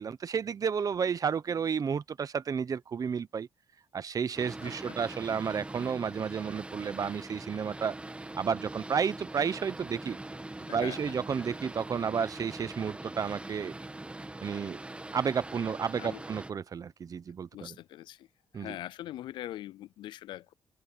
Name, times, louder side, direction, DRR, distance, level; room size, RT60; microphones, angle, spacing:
voice 1, 0.0-3.5 3.9-8.0 8.3-10.2 10.7-13.7 14.4-14.8 15.1-17.8 18.5-18.8, right 6 dB, 50° right, 1.0 m, -32 dB
Boat Water vehicle, 4.3-16.5, right 2 dB, 15° right, 1.6 m, -42 dB
voice 2, 4.6-5.0 10.7-11.1 16.0-16.2 17.5-18.3 18.5-20.5, left 14 dB, 85° left, 0.4 m, -42 dB
cardioid pair, 85°, 8 cm